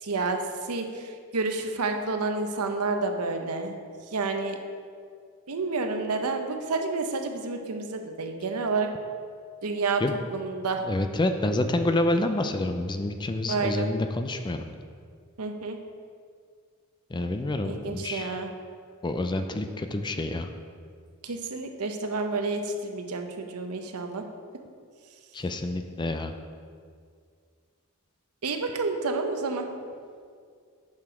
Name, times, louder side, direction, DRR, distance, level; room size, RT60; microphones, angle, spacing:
voice 1, 0.0-3.7 4.1-4.6 5.5-8.9 9.6-10.0 10.3-10.8 13.5-13.9 15.4-15.8 17.6-18.5 21.2-24.2 28.4-29.7, right 3 dB, 80° right, 5 dB, 0.8 m, -29 dB
voice 2, 10.8-14.6 17.1-18.4 19.0-20.5 25.3-26.3, left 1 dB, 20° left, 7 dB, 0.4 m, -28 dB
7.4 x 6.0 x 4.9 m, 2.1 s
head